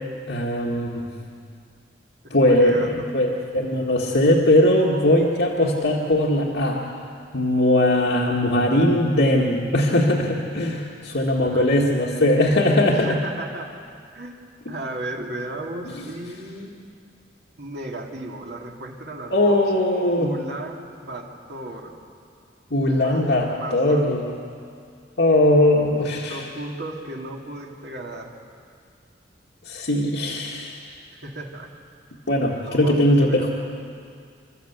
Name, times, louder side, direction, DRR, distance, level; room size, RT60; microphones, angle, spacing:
voice 1, 0.3-1.1 2.3-6.8 7.3-13.2 19.3-20.3 22.7-24.3 25.2-26.4 29.7-30.8 32.3-33.5, left 1 dB, 75° left, -4 dB, 1.8 m, -20 dB
voice 2, 2.2-2.9 11.1-12.3 12.8-13.7 14.1-14.3 14.7-16.7 17.6-19.6 20.1-21.9 22.9-24.0 26.3-28.3 31.1-31.7 32.7-33.5, right 1 dB, 65° right, -1 dB, 2.8 m, -35 dB
27.5 x 13.0 x 8.2 m, 2.3 s
head